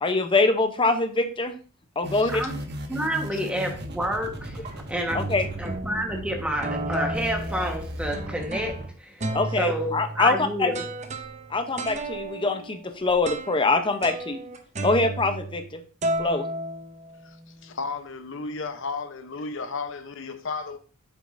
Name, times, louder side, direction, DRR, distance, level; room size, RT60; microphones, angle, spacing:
voice 1, 0.0-1.5 2.0-2.4 5.1-5.5 9.3-10.7 11.5-14.4 14.8-15.8 16.2-16.5, left 3 dB, 20° left, 0.6 m, -24 dB
sound 1, 2.0-8.9, right 1 dB, 50° right, 0.9 m, -37 dB
voice 2, 2.9-5.3 5.6-9.3 9.6-10.8, equal, 5° right, 1.2 m, -29 dB
sound 2, 3.7-4.0 4.6-4.7 5.1-6.2 6.6-8.9 9.2-15.7 16.0-17.4, right 2 dB, 30° right, 0.7 m, -33 dB
voice 3, 17.6-20.8, left 4 dB, 55° left, 0.8 m, -33 dB
8.1 x 6.3 x 2.6 m
head